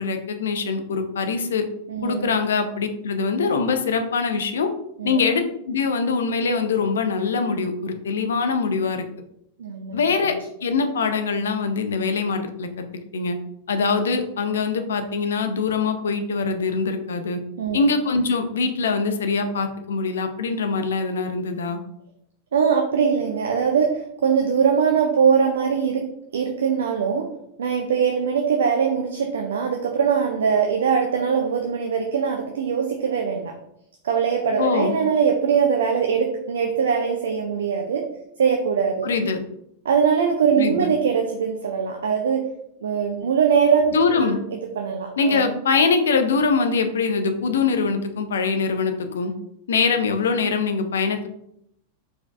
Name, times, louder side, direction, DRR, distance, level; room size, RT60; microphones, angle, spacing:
voice 1, 0.0-1.6 2.0-4.7 5.0-9.1 9.9-10.3 10.6-12.8 13.1-13.4 13.7-17.4 17.7-21.8 34.6-35.0 39.0-39.4 40.6-40.9 43.9-44.4 45.2-49.3 49.7-51.3, left 4 dB, 65° left, 7 dB, 0.5 m, -23 dB
voice 2, 1.9-2.3 5.0-5.2 9.6-10.0 17.6-17.8 22.5-26.1 26.3-27.3 27.6-33.5 34.0-38.1 38.4-39.1 39.8-42.5 42.8-44.4 44.8-45.5, right 6 dB, 65° right, 3 dB, 0.5 m, -21 dB
4.5 x 4.2 x 2.5 m, 0.75 s
figure-of-eight pair, 90°, 0 cm